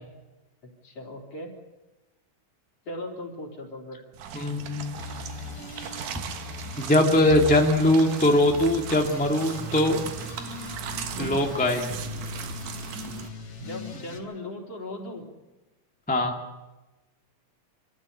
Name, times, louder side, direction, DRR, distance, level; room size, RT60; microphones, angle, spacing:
voice 1, 0.6-1.5 2.9-4.0 13.6-15.3, left 1 dB, 50° left, 0 dB, 4.7 m, -38 dB
sound 1, 4.1-13.3, right 8 dB, 80° right, 2.9 m, -38 dB
voice 2, 4.3-5.1 6.8-10.0 11.2-11.9 16.1-16.4, left 1 dB, 5° left, 2 dB, 1.5 m, -21 dB
sound 2, 5.0-14.2, left 3 dB, 80° left, 4.8 m, -39 dB
26.0 x 15.0 x 8.5 m, 1.1 s
omnidirectional pair, 3.5 m